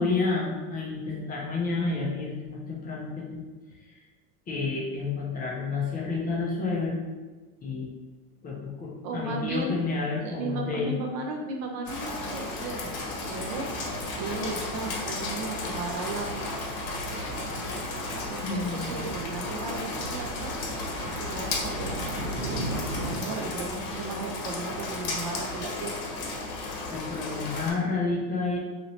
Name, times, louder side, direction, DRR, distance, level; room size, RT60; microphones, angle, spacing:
voice 1, 0.0-3.4 3.9-4.0 4.5-7.0 7.6-7.9 8.4-11.0 18.4-19.1 26.9-28.6, left 3 dB, 20° left, -4 dB, 0.4 m, -30 dB
voice 2, 9.0-9.8 10.2-16.3 18.2-20.5 21.2-26.0, right 3 dB, 40° right, 2 dB, 0.4 m, -35 dB
Rain, 11.9-27.7, left 3 dB, 50° left, 0.9 m, -34 dB
Thunder, 13.2-23.2, right 2 dB, 85° right, 1.0 m, -38 dB
2.9 x 2.8 x 2.7 m, 1.3 s
supercardioid pair, 115°, 46 cm